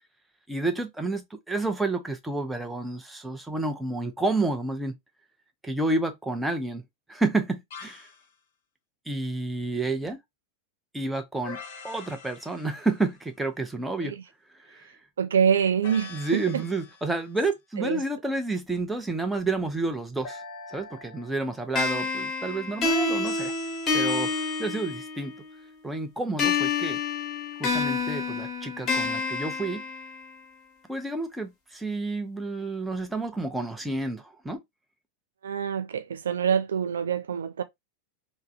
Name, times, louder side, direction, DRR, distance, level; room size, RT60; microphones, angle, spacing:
voice 1, 0.5-5.0 5.6-6.8 7.1-8.1 9.1-10.2 10.9-11.6 11.8-14.1 14.7-14.9 16.1-20.4 20.7-23.5 23.9-24.3 24.6-25.3 25.8-27.0 27.6-29.8 30.9-34.6, right 2 dB, 5° right, 0.6 m, -30 dB
sound 1, 7.7-8.2 11.4-13.2 15.8-17.3 20.2-21.7 23.2-25.0, left 4 dB, 50° left, 0.8 m, -43 dB
voice 2, 15.2-16.6 17.8-18.0 35.4-37.6, right 7 dB, 65° right, 0.4 m, -26 dB
sound 2, 21.8-25.4 26.4-30.4, left 4 dB, 25° left, 1.0 m, -28 dB
3.4 x 2.1 x 2.6 m
figure-of-eight pair, 90°, 0 cm